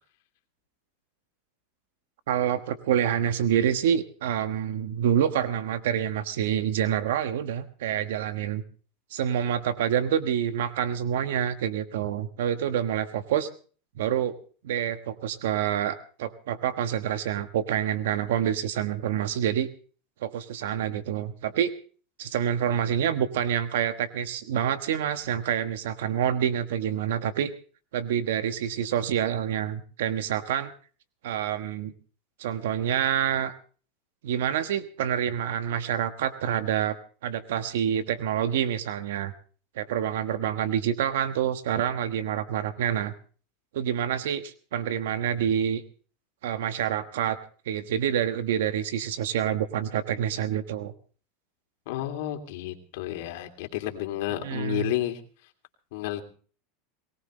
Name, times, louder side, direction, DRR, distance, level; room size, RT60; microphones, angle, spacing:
voice 1, 2.3-8.6 9.1-13.5 14.0-14.4 14.6-19.7 20.2-21.7 22.2-27.5 27.9-30.7 31.2-31.9 32.4-33.5 34.2-37.0 37.2-39.3 39.7-43.1 43.7-45.8 46.4-47.4 47.7-50.9 54.4-54.9, right 9 dB, 90° right, 11 dB, 1.3 m, -27 dB
voice 2, 51.9-55.2 55.9-56.2, left 14 dB, 70° left, 5 dB, 2.8 m, -31 dB
22.0 x 19.0 x 3.2 m, 0.41 s
supercardioid pair, 150°, 0 cm